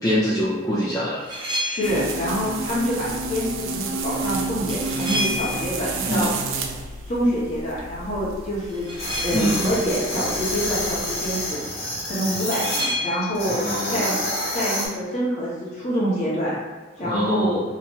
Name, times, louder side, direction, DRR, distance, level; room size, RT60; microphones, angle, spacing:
voice 1, 0.0-1.3 6.1-6.4 9.3-9.8 13.5-14.2 17.0-17.6, equal, 15° left, -7 dB, 0.3 m, -24 dB
sound 1, 1.1-2.1 4.7-5.9 8.7-9.7 12.5-13.5, left 1 dB, 25° right, 0.7 m, -29 dB
voice 2, 1.6-6.3 7.1-11.6 12.1-13.6 13.9-14.1 14.5-16.6 17.0-17.6, equal, 35° left, -8 dB, 1.1 m, -26 dB
sound 2, 1.8-11.5, right 3 dB, 85° right, 0.4 m, -31 dB
sound 3, 9.0-12.8 13.3-14.9, left 1 dB, 85° left, 1.2 m, -28 dB
2.9 x 2.2 x 3.0 m, 1.4 s
head